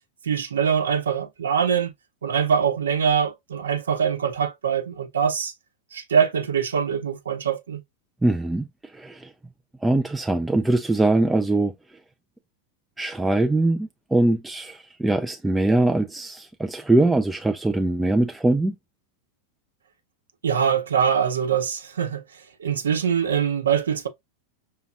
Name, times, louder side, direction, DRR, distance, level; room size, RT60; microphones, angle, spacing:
voice 1, 0.2-1.9 2.2-5.5 5.9-7.8 20.4-22.2 22.6-24.1, right 7 dB, 65° right, 0.7 m, -23 dB
voice 2, 8.2-9.3 9.8-11.7 13.0-18.8, right 2 dB, 5° right, 0.3 m, -22 dB
5.9 x 2.8 x 2.3 m
figure-of-eight pair, 90°, 0 cm